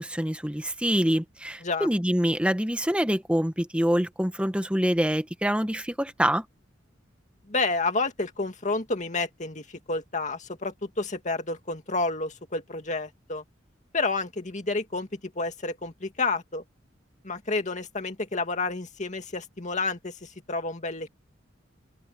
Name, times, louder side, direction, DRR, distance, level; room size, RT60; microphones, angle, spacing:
voice 1, 0.0-6.4, equal, 5° right, 1.3 m, -25 dB
voice 2, 7.5-13.4 13.9-16.6 17.2-21.1, left 3 dB, 40° left, 2.3 m, -30 dB
open air
head